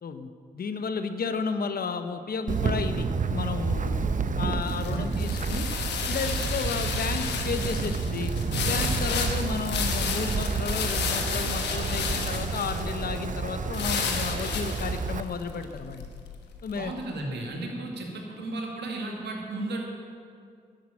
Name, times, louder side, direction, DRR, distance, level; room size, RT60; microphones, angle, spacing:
voice 1, 0.0-4.0 4.4-5.7 6.1-8.3 8.6-16.1 16.6-16.9, left 5 dB, 60° left, 9 dB, 1.0 m, -33 dB
Wind, 2.5-15.2, right 4 dB, 50° right, 0.8 m, -30 dB
sound 1, 3.8-16.9, left 6 dB, 85° left, 1.2 m, -32 dB
voice 2, 4.8-5.2 16.7-19.8, right 2 dB, 80° right, 0 dB, 2.2 m, -34 dB
11.0 x 8.0 x 8.8 m, 2.3 s
supercardioid pair, 50°, 17 cm